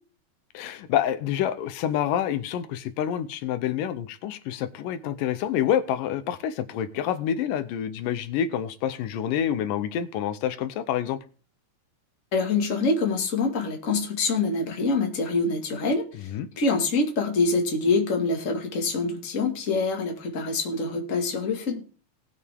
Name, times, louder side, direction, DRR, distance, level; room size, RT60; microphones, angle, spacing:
voice 1, 0.5-11.2 16.3-16.5, left 10 dB, 85° left, 2.5 m, -27 dB
voice 2, 12.3-21.8, left 3 dB, 25° left, 2.0 m, -25 dB
19.5 x 6.6 x 3.6 m
omnidirectional pair, 3.8 m